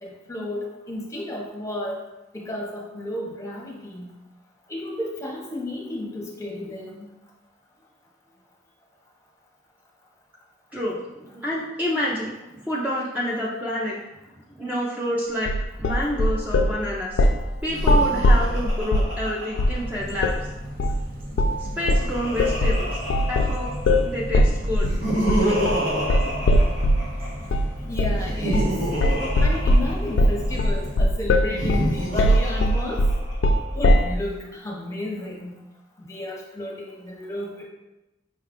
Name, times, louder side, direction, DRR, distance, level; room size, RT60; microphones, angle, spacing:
voice 1, 0.0-2.0 2.3-4.1 4.7-7.1 27.9-28.8 29.4-33.0 33.7-35.5 36.0-37.6, left 1 dB, 15° left, -2 dB, 0.8 m, -32 dB
voice 2, 10.7-12.3 12.6-13.9 14.6-17.2 17.6-20.5 21.6-23.0 23.3-23.7 24.0-24.9, left 1 dB, 10° right, -5 dB, 0.5 m, -28 dB
sound 1, 15.5-16.8 17.2-17.5 17.8-19.2 19.6-19.8 20.2-20.4 20.8-21.0 21.4-21.6 21.9-27.1 27.5-27.7 28.0-28.3 28.5-28.8 29.0-34.1, left 1 dB, 80° left, 0.3 m, -20 dB
Laughter, 17.6-20.4 21.5-24.1 24.7-27.5 28.1-30.5 31.4-33.5, right 1 dB, 90° right, 1.2 m, -29 dB
sound 2, 19.8-31.0, equal, 50° right, 0.6 m, -37 dB
5.4 x 2.3 x 3.6 m, 0.95 s
head